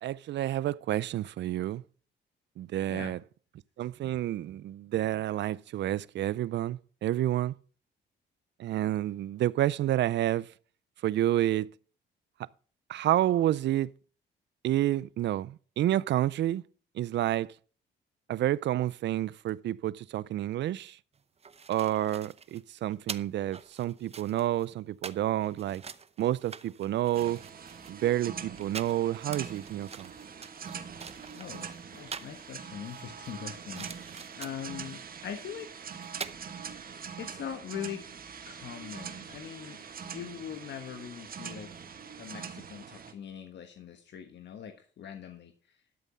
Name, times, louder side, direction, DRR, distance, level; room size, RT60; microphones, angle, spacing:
voice 1, 0.0-1.8 2.6-3.2 3.8-7.5 8.6-10.5 11.0-11.7 12.9-13.9 14.6-16.6 16.9-17.5 18.3-21.0 21.7-25.8 26.2-27.4 27.9-30.1, right 13 dB, 65° right, 0.5 m, -29 dB
sound 1, 21.1-32.4 32.8-34.7 35.7-35.8 36.0-36.4, right 6 dB, 30° right, 0.8 m, -45 dB
sound 2, 27.1-43.1, right 7 dB, 45° right, 1.4 m, -43 dB
voice 2, 31.3-35.7 37.2-38.0 38.5-41.7 42.2-45.8, left 8 dB, 60° left, 1.3 m, -42 dB
12.5 x 7.0 x 5.5 m
cardioid pair, 90°, 20 cm